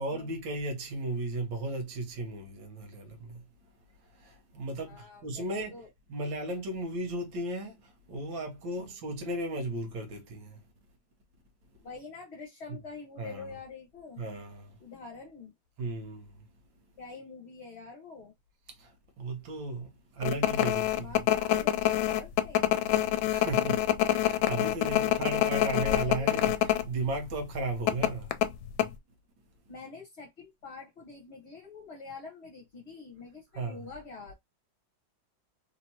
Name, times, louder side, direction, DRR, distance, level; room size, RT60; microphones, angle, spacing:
voice 1, 0.0-3.4 4.2-5.8 6.1-7.7 8.1-10.6 13.2-13.5 14.2-14.7 15.8-16.3 19.2-19.9 20.2-21.1 23.3-23.8 24.1-28.3 33.6-33.9, right 2 dB, 80° right, 1.9 m, -35 dB
voice 2, 4.9-5.4 5.7-5.9 8.8-8.9 11.8-14.2 14.8-15.5 17.0-18.3 20.9-22.8 24.8-26.5 29.7-34.3, left 4 dB, 40° left, 1.3 m, -46 dB
sound 1, 20.2-26.8 27.1-27.3 27.9-28.9, left 12 dB, 80° left, 1.3 m, -26 dB
3.9 x 2.9 x 2.8 m
omnidirectional pair, 2.1 m